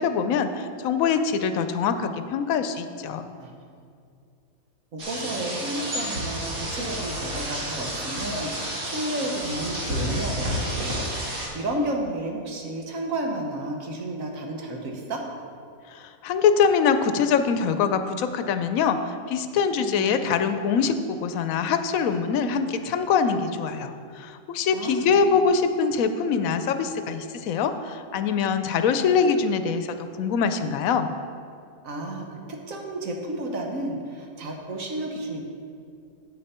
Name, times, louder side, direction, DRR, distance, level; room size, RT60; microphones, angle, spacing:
voice 1, 0.0-3.3 15.9-19.0 19.3-29.9 30.2-31.1, left 6 dB, 80° left, 9 dB, 1.0 m, -23 dB
voice 2, 3.4-3.8 4.9-15.2 19.8-20.3 24.7-25.4 31.8-35.4, right 1 dB, 70° right, 1 dB, 1.5 m, -32 dB
sound 1, 5.0-11.5, right 1 dB, 90° right, 2.2 m, -30 dB
8.7 x 8.4 x 4.3 m, 2.3 s
omnidirectional pair, 1.4 m